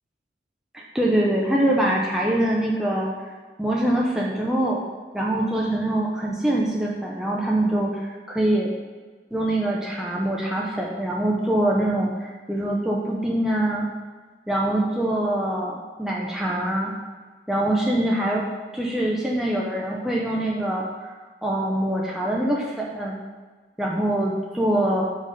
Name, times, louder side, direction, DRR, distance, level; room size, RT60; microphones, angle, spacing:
voice 1, 0.7-3.3 3.6-4.8 5.1-8.7 9.3-13.9 14.5-16.9 17.5-18.4 18.7-21.1 21.4-23.2 23.8-25.0, right 1 dB, 5° right, -4 dB, 0.5 m, -24 dB
5.3 x 5.3 x 3.7 m, 1.4 s
head